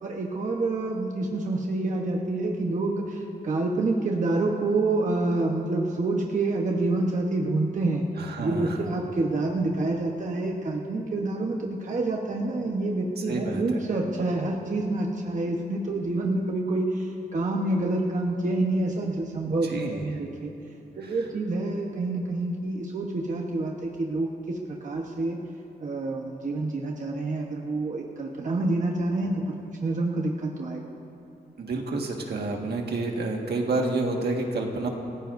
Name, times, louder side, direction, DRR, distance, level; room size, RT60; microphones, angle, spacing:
voice 1, 0.0-8.1 8.4-20.5 21.0-25.4 25.8-29.4 29.8-30.9, right 2 dB, 50° right, -1 dB, 1.1 m, -27 dB
voice 2, 8.2-8.9 13.3-13.8 19.5-20.0 21.0-21.1 31.6-34.9, right 2 dB, 75° right, 1 dB, 1.7 m, -29 dB
28.0 x 15.5 x 2.6 m, 2.8 s
wide cardioid pair, 135°, 17 cm